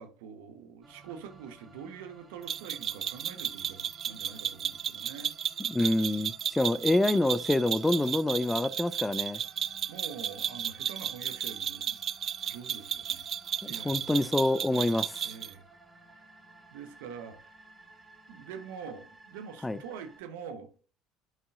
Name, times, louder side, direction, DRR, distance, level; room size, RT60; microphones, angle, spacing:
voice 1, 0.0-5.3 9.9-12.0 12.4-13.2 13.7-14.3 14.7-15.6 16.7-17.6 18.3-20.8, right 6 dB, 75° right, 1.0 m, -45 dB
sound 1, 0.8-20.2, right 2 dB, 25° right, 3.2 m, -57 dB
sound 2, 2.5-15.5, right 9 dB, 50° right, 0.4 m, -34 dB
voice 2, 5.7-9.4 13.6-15.2 19.6-19.8, left 2 dB, 10° left, 0.4 m, -27 dB
11.0 x 5.4 x 2.5 m
hypercardioid pair, 65°, 0 cm